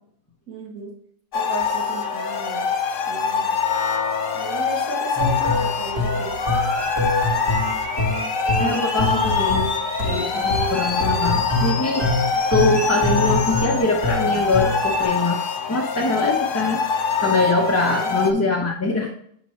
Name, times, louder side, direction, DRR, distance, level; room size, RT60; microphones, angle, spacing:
voice 1, 0.5-0.9 1.3-2.7 3.1-3.5 4.3-6.7 17.9-18.1, right 3 dB, 60° right, -4 dB, 1.6 m, -34 dB
sound 1, 1.3-18.3, left 5 dB, 70° left, 0.5 m, -24 dB
sound 2, 5.2-15.1, left 1 dB, 15° right, 1.2 m, -25 dB
sound 3, 6.4-13.8, left 3 dB, 35° left, 1.0 m, -33 dB
voice 2, 8.6-9.7 10.0-12.1 12.5-16.8 17.2-19.1, left 3 dB, 15° left, -2 dB, 0.5 m, -23 dB
7.4 x 5.2 x 3.1 m, 0.66 s
omnidirectional pair, 1.8 m